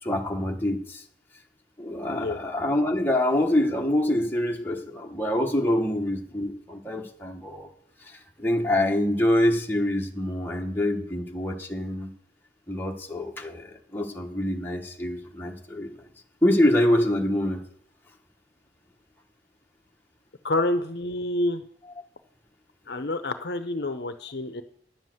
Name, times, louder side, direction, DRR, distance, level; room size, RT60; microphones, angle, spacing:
voice 1, 0.0-1.0 1.8-7.7 8.0-12.1 12.7-16.0 16.4-17.6, left 1 dB, 10° left, 0 dB, 1.2 m, -25 dB
voice 2, 20.4-21.6 22.9-24.6, left 1 dB, 60° left, 10 dB, 0.7 m, -28 dB
10.5 x 7.4 x 7.8 m, 0.64 s
head